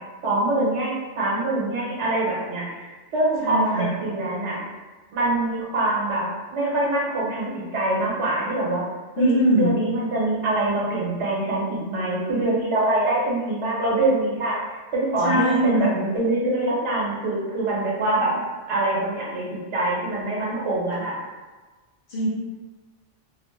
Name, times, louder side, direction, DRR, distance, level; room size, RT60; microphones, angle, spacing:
voice 1, 0.2-4.6 5.1-6.2 6.5-8.8 9.2-18.3 18.7-21.1, right 2 dB, 70° right, -5 dB, 1.1 m, -24 dB
voice 2, 3.4-3.9 9.2-9.7 15.2-15.9 22.1-22.3, right 1 dB, 60° left, -6 dB, 0.7 m, -21 dB
2.7 x 2.1 x 3.1 m, 1.3 s
omnidirectional pair, 1.2 m